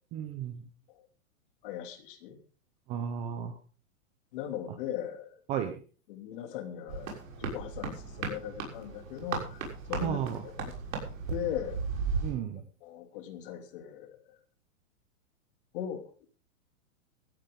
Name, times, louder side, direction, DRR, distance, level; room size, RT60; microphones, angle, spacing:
voice 1, 0.1-0.7 2.9-3.5 5.5-5.8 9.9-10.4 12.2-12.6, right 9 dB, 15° right, 9 dB, 0.7 m, -34 dB
voice 2, 1.6-2.4 4.3-5.3 6.1-7.1 7.4-10.2 10.4-10.7 11.3-11.8 12.8-14.2 15.7-16.3, left 10 dB, 40° left, 5 dB, 2.9 m, -39 dB
sound 1, 6.9-12.3, right 4 dB, 70° right, 6.3 m, -36 dB
17.5 x 13.5 x 3.7 m, 0.39 s
supercardioid pair, 170°, 41 cm